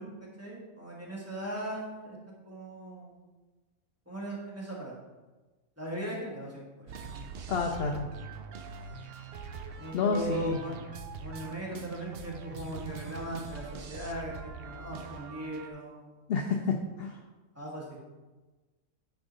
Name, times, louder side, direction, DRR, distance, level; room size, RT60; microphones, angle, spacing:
voice 1, 0.0-2.2 2.4-3.2 4.0-4.9 5.8-7.0 9.7-10.8 11.2-16.1 16.5-16.6 17.5-18.0, right 1 dB, 10° right, -5 dB, 1.3 m, -38 dB
sound 1, 6.9-15.7, right 5 dB, 60° right, 0.6 m, -43 dB
voice 2, 7.5-8.1 9.9-10.6 16.3-17.2, left 4 dB, 60° left, 3 dB, 0.6 m, -29 dB
9.7 x 3.6 x 3.9 m, 1.2 s
omnidirectional pair, 1.5 m